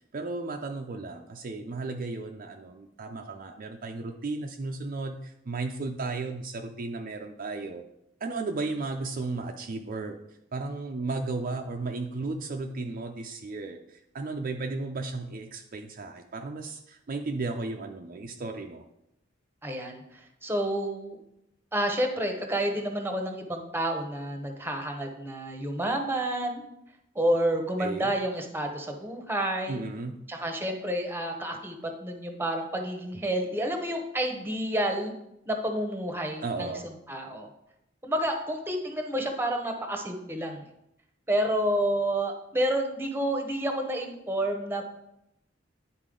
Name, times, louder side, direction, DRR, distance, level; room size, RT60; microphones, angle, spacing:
voice 1, 0.1-7.8 8.2-10.2 10.5-18.8 27.8-28.1 29.7-30.1 36.4-36.9, right 3 dB, 45° right, 3 dB, 0.5 m, -34 dB
voice 2, 19.6-21.2 21.7-26.6 27.1-29.8 30.3-35.1 35.5-36.7 37.1-37.5 38.0-40.6 41.3-44.8, right 1 dB, 10° right, 4 dB, 0.9 m, -29 dB
9.9 x 4.2 x 3.8 m, 0.82 s
head